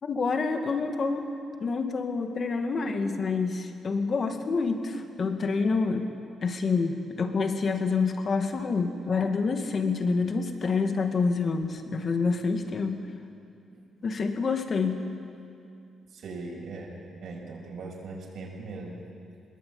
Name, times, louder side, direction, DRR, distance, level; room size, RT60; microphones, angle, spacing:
voice 1, 0.0-1.3 1.6-6.1 6.4-13.0 14.0-15.1, left 4 dB, 45° left, 5 dB, 2.1 m, -27 dB
voice 2, 16.1-19.0, right 3 dB, 65° right, -1 dB, 6.4 m, -40 dB
22.5 x 21.0 x 8.7 m, 2.5 s
cardioid pair, 120°, 0 cm